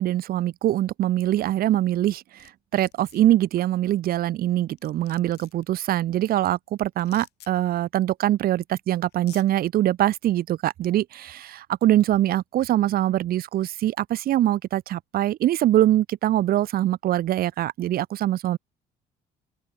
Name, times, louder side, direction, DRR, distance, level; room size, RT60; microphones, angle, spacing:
voice 1, 0.0-18.6, right 13 dB, 60° right, 1.1 m, -23 dB
sound 1, 2.1-2.5 2.8-3.2 4.4-4.5 4.8-5.6 7.0-7.5 8.6-8.7 9.1-9.5, left 15 dB, 75° left, 7.0 m, -49 dB
open air
cardioid pair, 110°, 17 cm